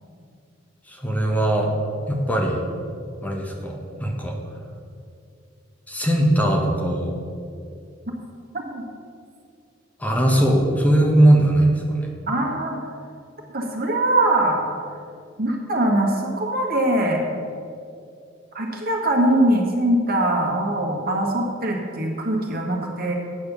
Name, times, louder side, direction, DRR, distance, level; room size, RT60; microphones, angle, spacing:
voice 1, 0.9-1.8 2.1-2.6 3.2-4.4 5.9-7.1 10.0-12.1, right 1 dB, 10° left, 0 dB, 1.0 m, -20 dB
voice 2, 12.3-12.9 13.5-14.6 15.4-17.2 18.5-23.1, right 1 dB, 50° right, 0 dB, 1.6 m, -22 dB
8.7 x 6.7 x 6.8 m, 2.4 s
head